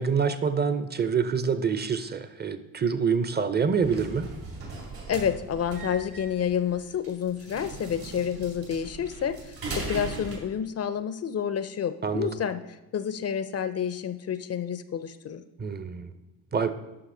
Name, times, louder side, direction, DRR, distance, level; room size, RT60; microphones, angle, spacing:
voice 1, 0.0-4.3 12.0-12.3 15.6-16.1 16.5-16.7, right 6 dB, 25° right, 12 dB, 0.7 m, -26 dB
sound 1, 3.8-10.4, right 3 dB, 65° right, 2.6 m, -39 dB
voice 2, 5.1-12.6 12.9-15.4, left 8 dB, 40° left, 12 dB, 0.5 m, -29 dB
9.7 x 5.6 x 3.8 m, 1.0 s
cardioid pair, 75°, 38 cm